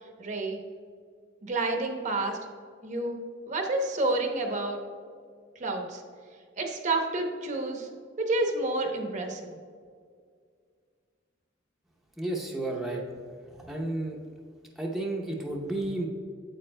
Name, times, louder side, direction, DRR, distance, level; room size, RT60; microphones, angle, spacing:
voice 1, 0.2-0.6 1.4-2.4 2.8-3.2 3.5-4.8 5.6-6.0 6.6-7.9 8.2-9.5, right 2 dB, 40° right, 2 dB, 0.8 m, -29 dB
voice 2, 12.2-13.0 13.5-14.2 14.8-16.1, right 2 dB, ahead, -2 dB, 0.7 m, -32 dB
8.6 x 8.0 x 2.2 m, 2.1 s
head